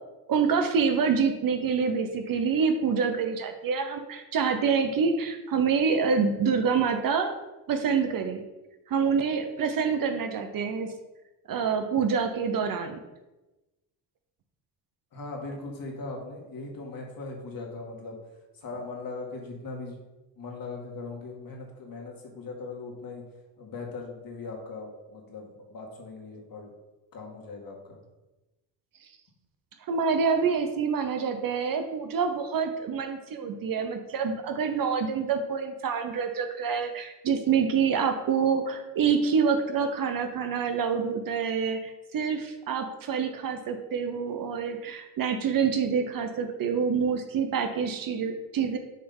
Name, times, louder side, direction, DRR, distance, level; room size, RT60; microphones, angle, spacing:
voice 1, 0.3-7.3 7.7-8.4 8.9-10.9 11.5-13.0 29.9-48.8, right 6 dB, 50° right, 6 dB, 0.9 m, -26 dB
voice 2, 15.1-18.2 18.5-20.0 20.4-23.2 23.6-26.7 27.1-28.0, left 3 dB, 50° left, 0 dB, 2.0 m, -39 dB
6.5 x 3.5 x 5.4 m, 1.1 s
supercardioid pair, 70°, 45 cm